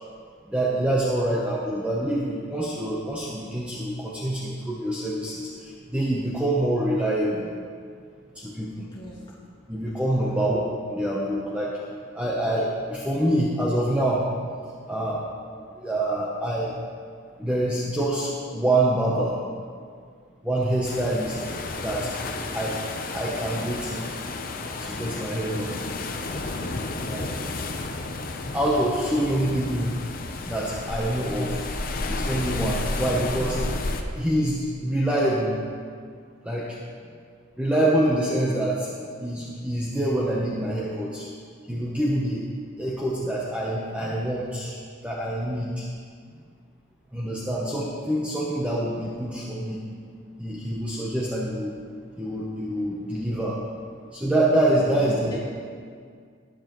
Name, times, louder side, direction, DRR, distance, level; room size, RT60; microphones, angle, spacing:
voice 1, 0.5-7.5 8.4-8.9 9.7-10.6 10.9-11.8 12.1-14.3 14.9-15.2 15.8-16.7 17.4-19.4 20.4-21.3 21.8-22.1 22.5-22.8 23.1-24.0 24.8-25.8 27.1-27.3 28.5-29.9 30.4-31.6 32.1-33.6 34.2-35.6 36.4-36.7 37.6-38.9 39.2-41.3 41.7-42.4 42.8-44.7 45.0-45.9 47.1-49.8 50.4-51.7 52.2-53.6 54.1-55.4, right 1 dB, 5° right, -5 dB, 0.8 m, -26 dB
sound 1, 20.8-34.0, left 2 dB, 45° left, 0.7 m, -32 dB
voice 2, 54.9-55.5, equal, 25° left, -6 dB, 2.1 m, -40 dB
12.0 x 10.0 x 3.0 m, 2.1 s
head